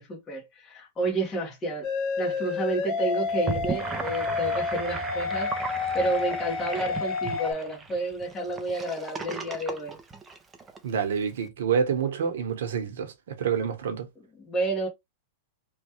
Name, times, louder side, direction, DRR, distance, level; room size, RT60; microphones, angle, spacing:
voice 1, 0.0-1.9 2.2-5.5 5.9-9.9 14.4-14.9, right 2 dB, 15° left, 1.1 m, -30 dB
sound 1, 1.8-7.5, left 5 dB, 35° left, 0.8 m, -30 dB
Gurgling / Sink (filling or washing), 3.3-10.8, right 4 dB, 15° right, 0.5 m, -36 dB
voice 2, 10.8-14.1, right 7 dB, 80° right, 0.9 m, -27 dB
3.1 x 2.3 x 2.8 m
supercardioid pair, 150°, 0 cm